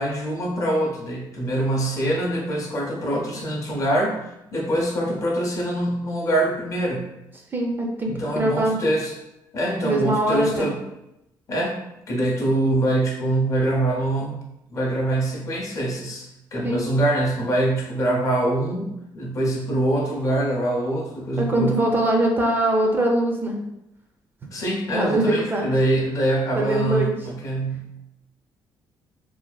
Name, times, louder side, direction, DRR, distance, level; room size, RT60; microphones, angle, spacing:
voice 1, 0.0-4.2 4.5-7.0 8.0-9.1 9.5-10.8 11.5-11.8 12.1-14.3 14.7-21.8 24.5-28.0, right 1 dB, 40° left, 0 dB, 0.5 m, -24 dB
voice 2, 7.5-8.8 9.8-10.7 16.6-16.8 21.4-23.6 24.9-25.7 26.6-27.1, right 1 dB, 25° right, 1 dB, 0.4 m, -22 dB
2.5 x 2.2 x 2.2 m, 0.88 s
cardioid pair, 120°, 8 cm